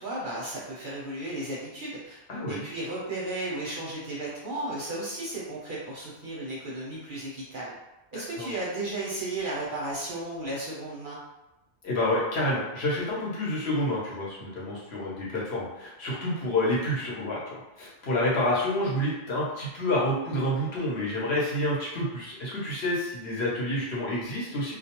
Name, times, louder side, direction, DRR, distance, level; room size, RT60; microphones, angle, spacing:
voice 1, 0.0-2.2 2.5-7.7 8.1-11.2, right 2 dB, 55° right, -6 dB, 0.6 m, -34 dB
voice 2, 2.3-2.7 8.1-8.5 11.8-24.7, left 1 dB, 65° left, -5 dB, 0.9 m, -28 dB
2.3 x 2.1 x 2.8 m, 0.99 s
omnidirectional pair, 1.2 m